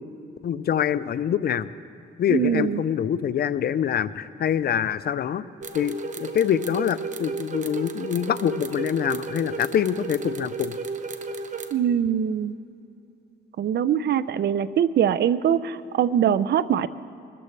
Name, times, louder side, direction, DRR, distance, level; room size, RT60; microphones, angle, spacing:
voice 1, 0.4-1.7 2.2-5.4 5.7-10.8, left 9 dB, 50° left, 15 dB, 0.5 m, -25 dB
voice 2, 2.3-2.8 11.7-12.5 13.6-16.9, right 9 dB, 60° right, 16 dB, 0.5 m, -22 dB
sound 1, 5.6-11.7, right 3 dB, 40° right, 1.0 m, -33 dB
22.5 x 14.0 x 3.3 m, 2.7 s
cardioid pair, 90°, 20 cm